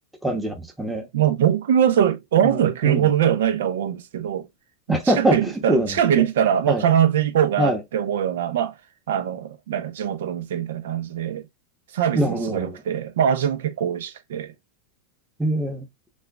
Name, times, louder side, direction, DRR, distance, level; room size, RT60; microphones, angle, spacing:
voice 1, 0.2-1.1 2.4-3.1 4.9-5.9 6.2-6.3 6.7-6.8 7.6-7.8 12.1-12.7 15.4-15.9, right 1 dB, 5° right, 0.8 m, -23 dB
voice 2, 1.1-4.5 4.9-8.8 9.1-11.4 11.9-14.5, right 9 dB, 80° right, 0.7 m, -22 dB
6.2 x 2.5 x 2.2 m
supercardioid pair, 155°, 0 cm